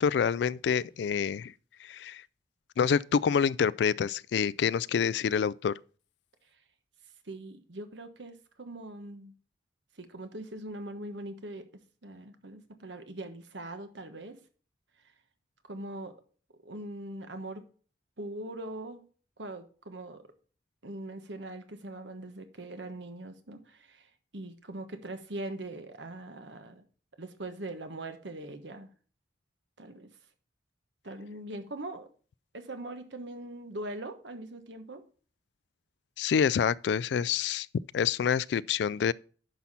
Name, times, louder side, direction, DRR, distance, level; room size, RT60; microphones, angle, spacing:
voice 1, 0.0-1.5 1.8-2.2 2.8-5.7 36.2-37.7 37.9-39.1, left 7 dB, 65° left, 0.3 m, -27 dB
voice 2, 7.2-9.3 10.0-11.7 12.0-14.4 15.7-16.1 16.6-17.6 18.2-19.0 19.4-20.2 20.8-26.8 27.2-28.9 29.8-30.1 31.0-32.1 32.5-35.0, right 1 dB, 75° right, 1.2 m, -41 dB
10.5 x 5.7 x 4.1 m
head